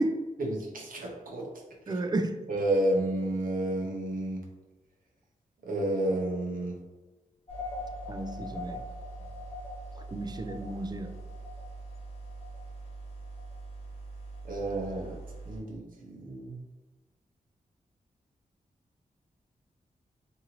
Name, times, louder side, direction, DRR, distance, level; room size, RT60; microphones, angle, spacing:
voice 1, 0.4-1.5 2.5-4.4 5.6-6.8 14.4-15.1 15.4-16.6, right 1 dB, 70° right, -1 dB, 0.7 m, -30 dB
voice 2, 1.9-2.4 8.1-8.8 10.0-11.1, right 2 dB, 30° right, 6 dB, 0.3 m, -31 dB
sound 1, 7.5-15.6, right 1 dB, 40° left, 1.1 m, -41 dB
2.7 x 2.6 x 2.9 m, 1.2 s
cardioid pair, 60°, 15 cm